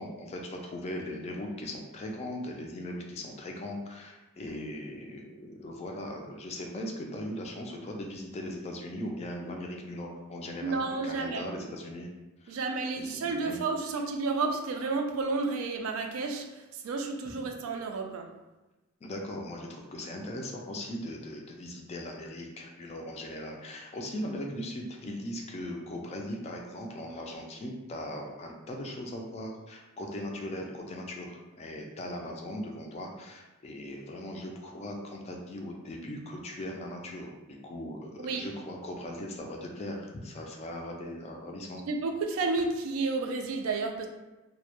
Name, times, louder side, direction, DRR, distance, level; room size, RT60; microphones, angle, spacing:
voice 1, 0.0-12.1 12.4-12.6 13.0-13.6 19.0-41.8, left 1 dB, 30° left, 1 dB, 0.3 m, -39 dB
voice 2, 10.6-11.4 12.5-18.3 38.2-38.4 41.9-44.1, right 3 dB, 75° right, 4 dB, 0.3 m, -31 dB
2.1 x 2.0 x 2.8 m, 1.1 s
head